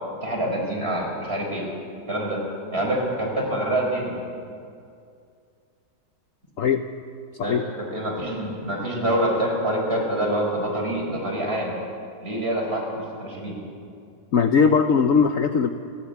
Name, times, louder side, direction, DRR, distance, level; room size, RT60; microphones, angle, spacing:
voice 1, 0.2-1.6 2.1-2.4 2.7-4.2 7.4-11.7 12.2-13.5, right 1 dB, 30° right, -1 dB, 5.3 m, -26 dB
voice 2, 14.3-15.7, left 6 dB, 60° left, 7 dB, 1.0 m, -19 dB
29.5 x 11.5 x 8.6 m, 2.4 s
omnidirectional pair, 2.0 m